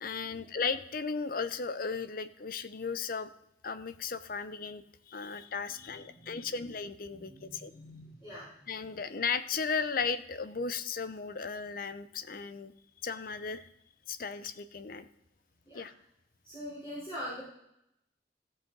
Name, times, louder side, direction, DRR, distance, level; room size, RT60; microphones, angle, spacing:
voice 1, 0.0-3.3 3.6-7.7 8.7-12.7 13.0-13.7 14.1-15.1 15.7-15.9, left 5 dB, 50° left, 13 dB, 0.7 m, -35 dB
voice 2, 5.7-6.6 7.1-8.5 15.6-15.8 16.4-17.4, equal, 25° left, -10 dB, 4.2 m, -44 dB
14.0 x 7.6 x 4.0 m, 0.78 s
head